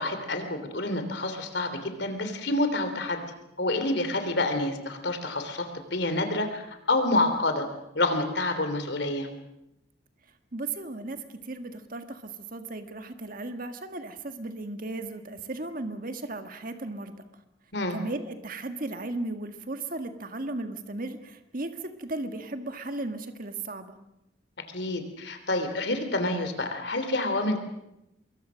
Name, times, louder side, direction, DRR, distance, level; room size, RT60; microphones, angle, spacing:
voice 1, 0.0-3.2 3.6-7.6 7.9-9.3 17.7-18.0 24.7-27.6, left 2 dB, 60° left, 7 dB, 3.3 m, -28 dB
voice 2, 10.5-17.1 17.9-24.0, right 2 dB, 45° right, 8 dB, 1.7 m, -36 dB
25.5 x 22.5 x 6.4 m, 0.87 s
head